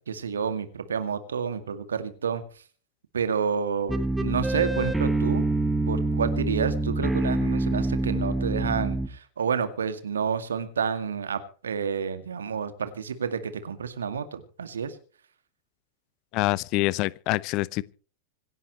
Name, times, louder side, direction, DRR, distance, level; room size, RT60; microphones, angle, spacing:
voice 1, 0.0-2.4 3.1-5.4 5.9-15.0, right 6 dB, 70° right, 2.1 m, -29 dB
sound 1, 3.9-9.1, right 2 dB, 5° right, 1.6 m, -26 dB
voice 2, 16.3-17.8, left 20 dB, 40° left, 0.7 m, -26 dB
26.5 x 11.0 x 3.1 m
figure-of-eight pair, 90°, 0 cm